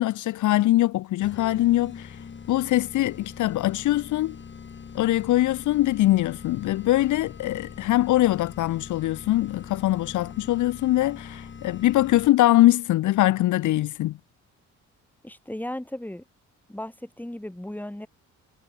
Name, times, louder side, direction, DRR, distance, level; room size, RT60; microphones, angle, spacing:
voice 1, 0.0-2.2 2.5-4.4 4.9-14.2, left 15 dB, 75° left, 0.8 m, -22 dB
sound 1, 1.2-12.6, left 6 dB, 40° left, 2.9 m, -42 dB
voice 2, 15.2-16.2 16.7-18.1, left 1 dB, 5° left, 7.2 m, -35 dB
cardioid pair, 90°, 30 cm